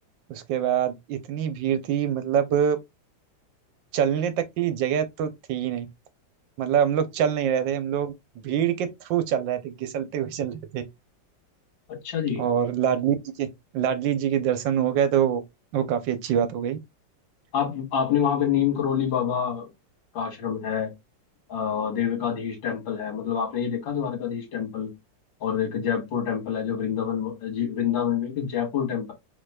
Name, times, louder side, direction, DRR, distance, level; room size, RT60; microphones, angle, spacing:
voice 1, 0.3-2.8 3.9-5.9 6.6-8.1 8.4-10.8 12.4-13.5 13.7-15.4 15.7-16.8, right 9 dB, 75° right, 1.4 m, -25 dB
voice 2, 11.9-12.4 17.5-19.7 20.1-20.9 21.5-24.9 25.4-29.1, left 8 dB, 85° left, 2.4 m, -27 dB
5.0 x 4.3 x 2.3 m
omnidirectional pair, 2.0 m